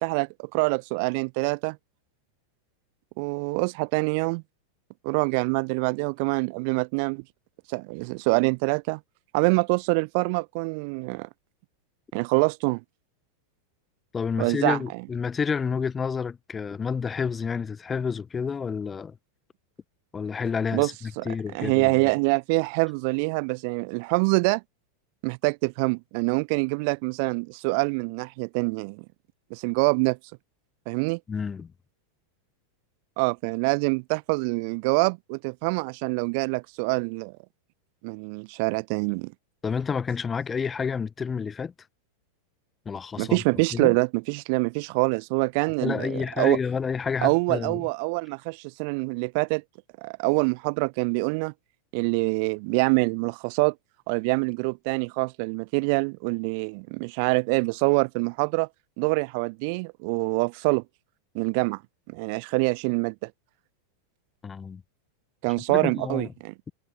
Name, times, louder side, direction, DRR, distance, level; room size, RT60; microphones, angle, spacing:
voice 1, 0.0-1.8 3.2-4.4 5.0-7.2 7.7-9.0 9.3-11.3 12.1-12.8 14.4-14.8 20.7-20.9 21.2-21.3 21.5-24.6 25.2-29.0 29.5-30.2 30.9-31.2 33.2-37.3 38.0-39.3 43.2-46.6 47.2-49.6 50.0-51.5 51.9-53.7 54.1-58.7 59.0-60.8 61.3-61.8 62.1-63.3 65.4-66.5, right 33 dB, 45° right, 1.0 m, -25 dB
voice 2, 14.1-19.2 20.1-22.0 31.3-31.7 39.6-41.7 42.8-43.4 43.7-44.0 45.8-47.8 64.4-64.8 65.7-66.3, left 6 dB, 20° left, 1.0 m, -29 dB
figure-of-eight pair, 90°, 0 cm